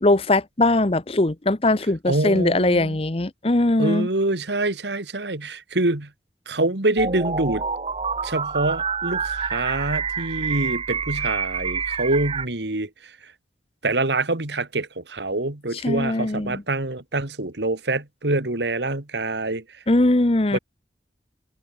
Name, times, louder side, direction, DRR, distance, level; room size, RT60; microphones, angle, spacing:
voice 1, 0.0-4.1 15.7-16.6 19.9-20.6, left 2 dB, 35° left, 0.9 m, -20 dB
voice 2, 2.1-3.0 3.8-6.1 6.5-7.6 8.2-12.9 13.8-19.6 20.5-20.6, right 2 dB, 75° right, 2.1 m, -25 dB
sound 1, 7.0-12.5, right 5 dB, 30° right, 1.0 m, -27 dB
head